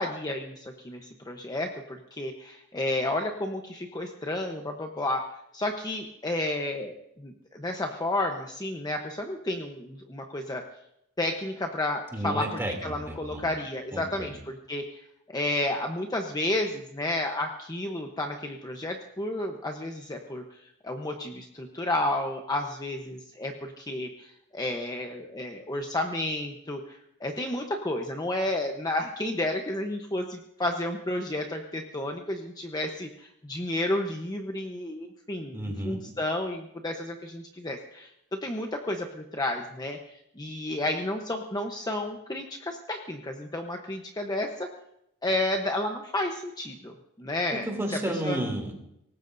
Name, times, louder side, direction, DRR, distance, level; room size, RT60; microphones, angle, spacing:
voice 1, 0.0-5.2 5.5-10.6 11.2-12.4 12.8-15.0 15.3-44.7 45.2-47.7 48.2-48.4, left 1 dB, 20° left, 3 dB, 1.0 m, -31 dB
voice 2, 12.1-13.5 13.9-14.3 35.5-36.1 47.5-48.7, right 1 dB, 10° right, 1 dB, 2.9 m, -32 dB
23.5 x 19.0 x 2.7 m, 0.79 s
head